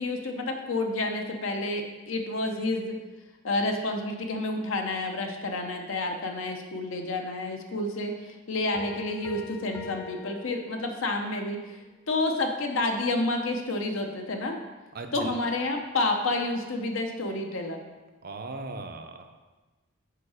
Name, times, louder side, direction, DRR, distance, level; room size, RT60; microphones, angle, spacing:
voice 1, 0.0-3.0 3.4-11.8 12.1-14.6 15.1-17.8, left 2 dB, 70° left, 3 dB, 0.8 m, -29 dB
Piano, 8.7-11.2, left 5 dB, 15° left, 0.7 m, -43 dB
voice 2, 14.9-15.3 18.2-19.4, right 3 dB, 45° right, 6 dB, 0.6 m, -38 dB
6.7 x 4.8 x 4.9 m, 1.2 s
head